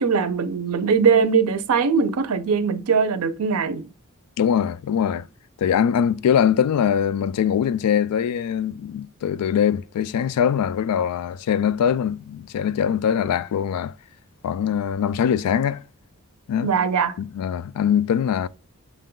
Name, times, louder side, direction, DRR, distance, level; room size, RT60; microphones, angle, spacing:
voice 1, 0.0-3.8 16.6-17.2, right 5 dB, 75° right, 0.5 m, -21 dB
voice 2, 4.4-5.3 5.6-13.9 14.4-15.8 16.5-16.7 17.2-18.5, left 8 dB, 85° left, 0.3 m, -22 dB
6.0 x 2.2 x 3.7 m
head